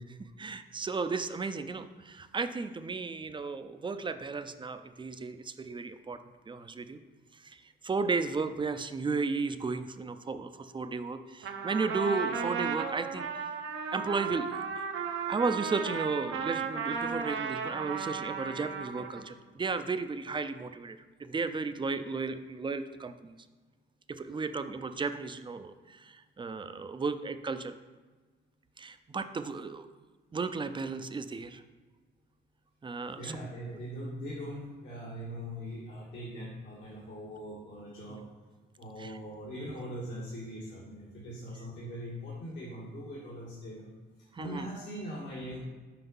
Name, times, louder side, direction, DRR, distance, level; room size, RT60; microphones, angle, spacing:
voice 1, 0.4-6.2 6.5-7.0 7.3-13.5 13.9-14.9 15.3-23.4 24.1-27.7 28.8-29.9 30.3-31.6 32.8-33.5 39.0-39.2 44.3-44.7, right 4 dB, 25° right, 9 dB, 0.5 m, -34 dB
Trumpet, 11.4-19.3, right 6 dB, 75° right, 0.8 m, -35 dB
voice 2, 33.2-38.3 38.8-43.9 44.2-45.6, equal, 70° left, -7 dB, 1.9 m, -41 dB
5.8 x 5.2 x 5.4 m, 1.3 s
cardioid pair, 90°, 20 cm